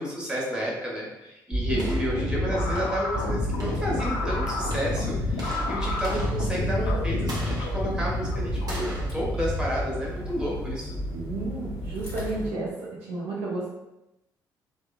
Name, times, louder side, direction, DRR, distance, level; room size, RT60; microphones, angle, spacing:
voice 1, 0.0-10.9, equal, 10° right, -5 dB, 1.1 m, -31 dB
sound 1, 1.5-10.7, equal, 35° right, 0.9 m, -31 dB
voice 2, 1.7-2.3 11.1-12.7 13.0-13.7, right 2 dB, 70° right, -4 dB, 0.6 m, -32 dB
sound 2, 2.2-8.9, left 3 dB, 70° left, 0.4 m, -31 dB
sound 3, 3.1-12.5, equal, 20° left, 1.1 m, -35 dB
2.8 x 2.2 x 2.2 m, 0.93 s
figure-of-eight pair, 45°, 11 cm